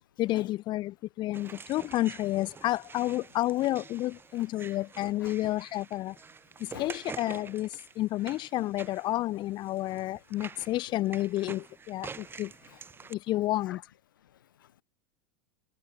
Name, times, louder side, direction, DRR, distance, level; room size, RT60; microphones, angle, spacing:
voice 1, 0.2-6.2 6.6-12.5 13.1-13.8, left 16 dB, 45° left, 1.7 m, -30 dB
sound 1, 1.3-13.1, right 5 dB, 20° right, 7.4 m, -47 dB
voice 2, 10.3-10.7 12.1-12.4 12.7-13.2 13.6-13.8 14.2-14.8, left 11 dB, 80° left, 2.5 m, -50 dB
hypercardioid pair, 95°, 11 cm